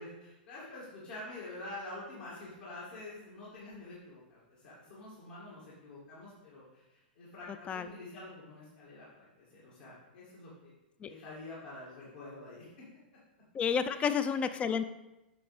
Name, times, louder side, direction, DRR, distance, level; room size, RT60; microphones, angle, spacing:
voice 1, 0.0-10.7 11.0-12.7 13.8-14.2, left 2 dB, 60° left, -7 dB, 2.2 m, -47 dB
voice 2, 13.5-14.9, left 7 dB, 20° left, 11 dB, 0.5 m, -30 dB
7.6 x 5.9 x 3.4 m, 0.96 s
figure-of-eight pair, 100°, 6 cm